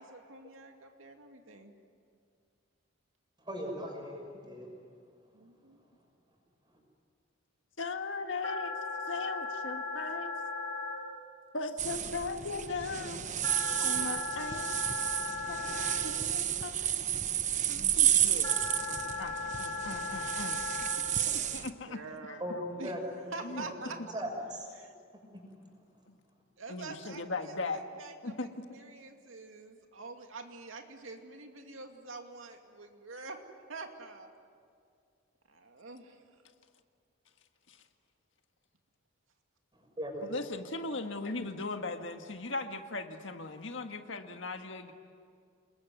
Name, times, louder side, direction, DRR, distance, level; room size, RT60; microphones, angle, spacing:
voice 1, 0.0-1.7 5.3-5.8 21.8-22.5 22.8-23.0 23.3-24.2 24.7-24.9 26.6-33.4 33.7-34.3 35.5-36.2, right 3 dB, 80° right, 4 dB, 2.5 m, -46 dB
voice 2, 3.4-4.7 22.4-23.7 24.1-24.3 40.0-40.2, equal, 20° right, 2 dB, 6.4 m, -38 dB
voice 3, 7.8-8.8 9.1-10.3 11.5-13.2 13.6-14.7 15.5-17.4 17.7-20.6 21.3-22.4 23.4-23.6 26.1-26.2 26.7-27.8 28.2-28.6 37.7-37.8 40.2-44.9, left 3 dB, 65° left, 6 dB, 1.7 m, -39 dB
sound 1, 8.4-10.9 13.4-15.9 18.4-20.9, left 3 dB, 15° left, 3.4 m, -37 dB
sound 2, 11.8-21.7, right 10 dB, 35° right, 0.9 m, -31 dB
29.0 x 21.5 x 9.5 m, 2.2 s
head